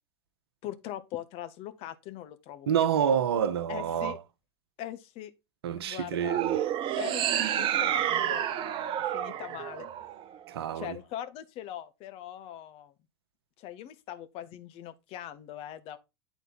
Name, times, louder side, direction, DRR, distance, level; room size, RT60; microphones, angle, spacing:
voice 1, 0.6-2.9 3.7-4.2 4.8-5.3 5.8-6.4 7.0-9.9 10.7-12.9 13.6-16.0, left 12 dB, 45° left, 1.0 m, -41 dB
voice 2, 2.7-4.2 5.6-6.6 10.5-11.0, right 9 dB, 65° right, 0.9 m, -28 dB
sound 1, 6.2-10.6, right 11 dB, 40° right, 0.7 m, -29 dB
9.1 x 4.0 x 4.1 m
figure-of-eight pair, 80°, 14 cm